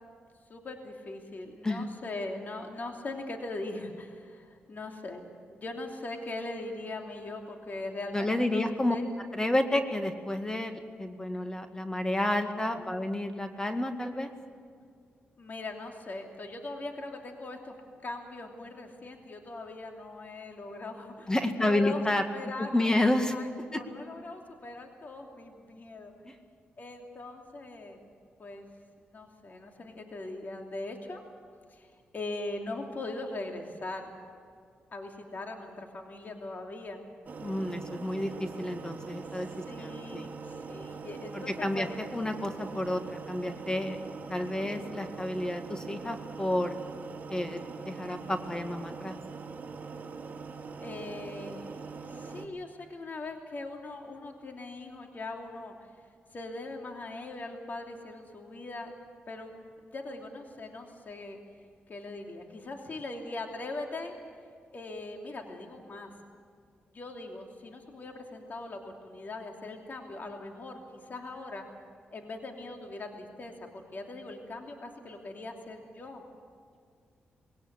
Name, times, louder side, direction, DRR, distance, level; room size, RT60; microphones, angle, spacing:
voice 1, 0.5-5.2 5.6-9.1 15.4-17.8 18.0-21.3 21.6-22.0 22.3-26.1 26.8-28.1 28.4-28.7 29.0-31.2 31.7-31.9 32.1-34.1 34.9-37.0 39.7-41.9 50.8-55.7 56.3-58.9 59.3-61.4 61.9-64.1 64.7-66.1 66.9-71.7 72.1-76.2, left 2 dB, 50° left, 3 dB, 3.0 m, -40 dB
voice 2, 8.1-9.0 9.3-14.3 21.3-22.3 22.6-23.3 23.7-23.8 26.2-26.4 37.4-40.3 41.3-44.0 44.3-46.8 47.3-49.2, left 1 dB, 20° left, 6 dB, 1.9 m, -30 dB
sound 1, 37.3-52.5, right 4 dB, 50° right, 2.0 m, -42 dB
20.0 x 18.0 x 8.3 m, 2.2 s
cardioid pair, 70°, 4 cm